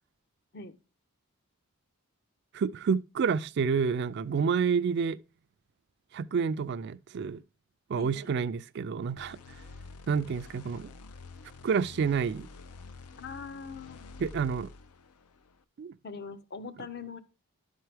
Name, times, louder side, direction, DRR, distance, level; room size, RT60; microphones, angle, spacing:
voice 1, 2.5-5.2 6.1-7.4 7.9-9.4 10.1-10.9 11.6-12.5 14.2-14.7 15.8-15.9, right 6 dB, 50° right, 0.3 m, -29 dB
voice 2, 7.9-8.3 13.2-14.1 16.0-17.2, left 5 dB, 45° left, 0.6 m, -42 dB
sound 1, 9.2-15.6, left 4 dB, 85° left, 0.5 m, -48 dB
11.5 x 4.4 x 3.4 m
head